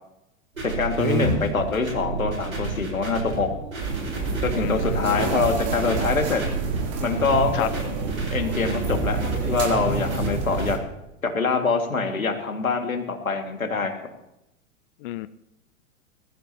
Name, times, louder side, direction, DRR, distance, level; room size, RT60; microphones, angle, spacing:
voice 1, 0.6-3.5 4.4-6.4 7.0-7.7 8.3-10.8 11.2-13.9, left 4 dB, 85° left, 4 dB, 2.3 m, -24 dB
sound 1, 0.6-10.7, right 2 dB, 85° right, 5.0 m, -30 dB
sound 2, 3.8-10.8, right 5 dB, 40° right, 3.3 m, -30 dB
voice 2, 4.6-5.4 7.5-7.7 15.0-15.3, left 16 dB, 45° left, 15 dB, 0.5 m, -31 dB
20.5 x 14.5 x 2.9 m, 0.86 s
figure-of-eight pair, 95°, 40 cm